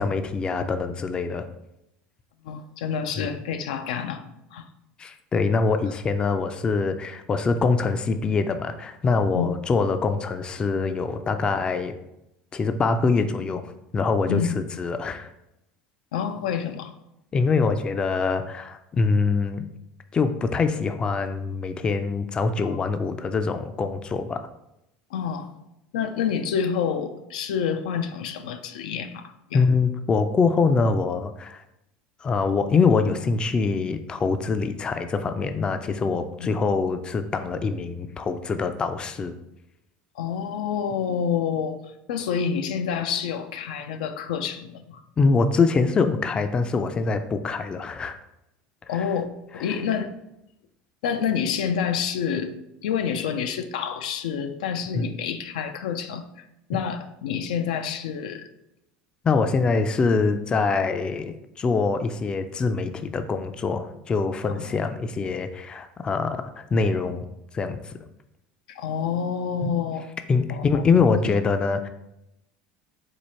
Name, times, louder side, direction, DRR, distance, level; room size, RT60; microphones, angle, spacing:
voice 1, 0.0-1.5 3.2-3.3 5.0-11.9 12.5-15.3 17.3-19.6 20.1-24.5 29.5-31.6 32.2-39.3 45.2-48.2 48.9-49.0 49.7-49.8 54.9-55.1 59.2-67.3 67.5-68.0 69.6-69.7 70.3-71.9, left 4 dB, 25° left, 9 dB, 0.3 m, -24 dB
voice 2, 2.4-4.3 4.5-4.7 9.3-9.5 14.3-14.7 16.1-16.9 22.6-22.9 25.1-25.5 25.9-29.6 36.4-36.5 40.2-45.0 48.9-49.3 49.5-50.1 51.0-52.5 52.8-58.5 64.5-64.9 68.7-70.1 70.5-70.8 71.2-71.3, left 7 dB, 90° left, 8 dB, 0.4 m, -28 dB
4.6 x 2.4 x 4.2 m, 0.84 s
supercardioid pair, 115°, 4 cm